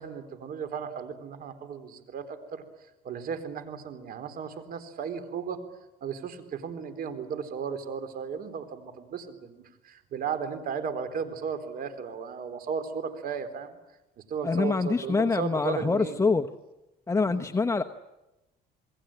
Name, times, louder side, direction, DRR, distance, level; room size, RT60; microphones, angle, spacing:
voice 1, 0.0-2.6 3.0-5.6 6.0-13.8 14.3-16.2 17.3-17.5, right 6 dB, 60° right, 9 dB, 3.9 m, -35 dB
voice 2, 14.4-16.5 17.1-17.8, left 4 dB, 15° left, 6 dB, 1.0 m, -25 dB
27.5 x 21.5 x 8.9 m, 0.96 s
cardioid pair, 110°, 17 cm